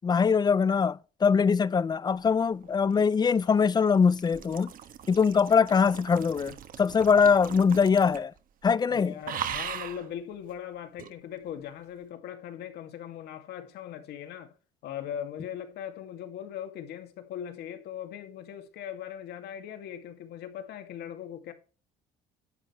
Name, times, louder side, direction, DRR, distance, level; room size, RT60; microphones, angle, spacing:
voice 1, 0.0-4.7 5.1-8.3 8.6-9.1, left 6 dB, 25° left, 0.5 m, -23 dB
sound 1, 2.6-8.4 8.6-8.9 9.2-10.1 11.0-11.1, right 9 dB, 55° right, 1.3 m, -40 dB
voice 2, 8.9-14.5 14.8-21.5, left 9 dB, 75° left, 2.3 m, -39 dB
11.0 x 7.8 x 4.5 m
cardioid pair, 110°, 17 cm